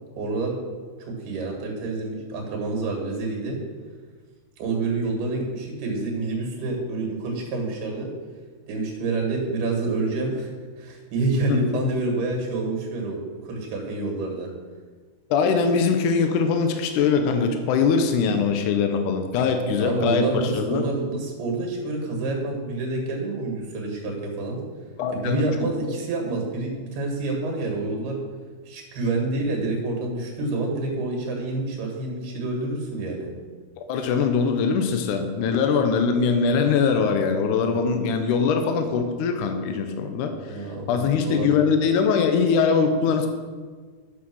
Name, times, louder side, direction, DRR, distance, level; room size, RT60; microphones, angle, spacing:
voice 1, 0.2-0.6 1.0-3.6 4.6-8.1 8.7-10.5 10.8-14.5 19.8-24.6 25.1-28.2 28.7-33.3 40.5-41.5, right 3 dB, 85° right, 1 dB, 4.0 m, -28 dB
voice 2, 11.5-11.8 15.3-20.8 25.0-25.4 33.8-43.3, left 5 dB, 80° left, 6 dB, 1.8 m, -22 dB
9.8 x 6.2 x 6.2 m, 1.5 s
omnidirectional pair, 4.5 m